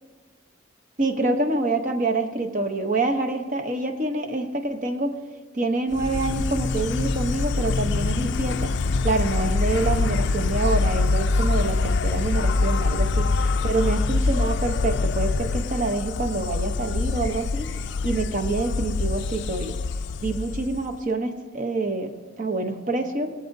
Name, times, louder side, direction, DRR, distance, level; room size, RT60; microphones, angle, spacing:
voice 1, 1.0-5.1 5.5-8.7 9.0-19.8 20.2-23.3, right 2 dB, 40° right, 5 dB, 0.8 m, -26 dB
Insect, 5.9-21.0, left 3 dB, 60° left, 0.4 m, -24 dB
22.0 x 7.6 x 2.7 m, 1.4 s
head